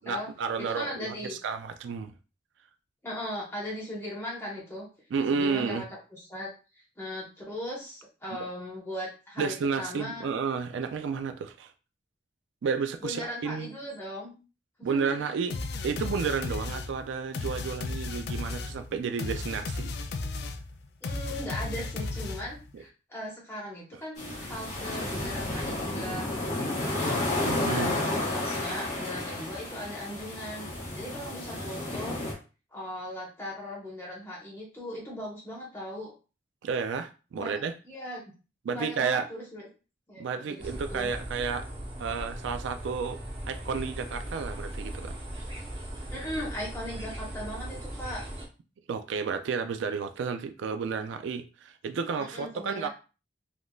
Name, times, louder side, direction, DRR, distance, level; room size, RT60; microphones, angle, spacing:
voice 1, 0.0-2.1 5.1-5.8 8.4-8.5 9.4-11.7 12.6-13.7 14.8-15.5 15.8-19.9 22.7-22.8 27.5-28.0 36.6-37.8 38.6-39.3 40.2-41.7 42.0-43.2 43.5-45.2 48.9-52.9, right 5 dB, 80° right, 0.3 m, -31 dB
voice 2, 0.6-1.4 3.0-4.9 5.3-5.9 6.1-6.5 7.0-10.3 13.0-14.3 14.9-15.4 21.0-27.3 27.7-30.7 30.9-32.2 32.7-36.1 37.3-37.6 37.8-38.2 38.7-39.7 40.1-41.1 46.1-48.2 52.2-52.9, left 1 dB, 15° left, 1.1 m, -38 dB
sound 1, 15.5-22.7, left 3 dB, 55° left, 0.3 m, -35 dB
sound 2, 24.2-32.3, left 2 dB, 40° left, 1.0 m, -32 dB
sound 3, 40.6-48.4, right 1 dB, 30° right, 0.9 m, -38 dB
3.5 x 2.5 x 2.3 m
head